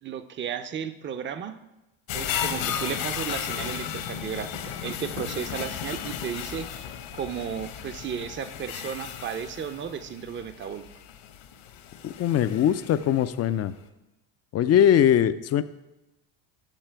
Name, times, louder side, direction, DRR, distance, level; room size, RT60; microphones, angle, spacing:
voice 1, 0.0-1.6 2.1-6.7 7.1-10.9, right 8 dB, 25° right, 11 dB, 0.5 m, -34 dB
sound 1, 2.1-13.3 13.7-13.8, left 9 dB, 65° left, 1.1 m, -35 dB
voice 2, 12.0-13.7 14.5-15.6, left 10 dB, 35° left, 14 dB, 0.4 m, -21 dB
9.0 x 5.6 x 4.5 m, 0.98 s
supercardioid pair, 80°, 49 cm